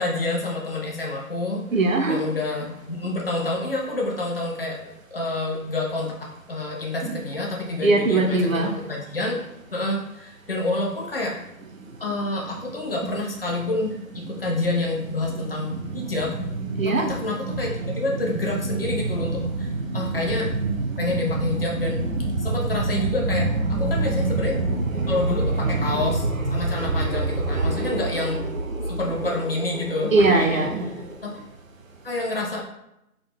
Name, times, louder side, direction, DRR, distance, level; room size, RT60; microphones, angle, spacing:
voice 1, 0.0-1.6 2.1-11.4 12.0-16.4 16.8-19.7 19.9-20.6 21.0-22.0 22.4-24.6 25.1-28.4 28.9-30.7 31.2-31.4 32.0-32.6, left 2 dB, 40° left, -2 dB, 0.9 m, -28 dB
voice 2, 1.7-2.2 7.0-7.2 7.8-8.7 13.0-13.1 15.9-16.0 16.8-17.8 18.1-18.2 18.8-19.0 19.3-21.4 21.8-28.3 28.5-28.9 30.0-30.9, right 2 dB, 60° right, 4 dB, 0.8 m, -24 dB
3.9 x 3.7 x 3.1 m, 0.85 s
figure-of-eight pair, 170°, 44 cm